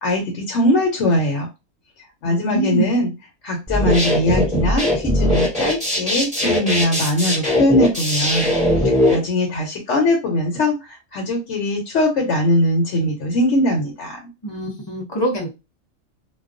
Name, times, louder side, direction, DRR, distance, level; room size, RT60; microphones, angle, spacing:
voice 1, 0.0-1.5 2.2-3.1 3.4-8.5 8.8-10.7 11.1-14.2, left 1 dB, 70° left, 0 dB, 0.9 m, -20 dB
voice 2, 2.2-2.9 14.4-15.5, right 1 dB, 45° left, -2 dB, 0.3 m, -24 dB
sound 1, 3.7-9.1, left 1 dB, 5° right, 0.9 m, -19 dB
2.3 x 2.2 x 2.4 m, 0.26 s
omnidirectional pair, 1.3 m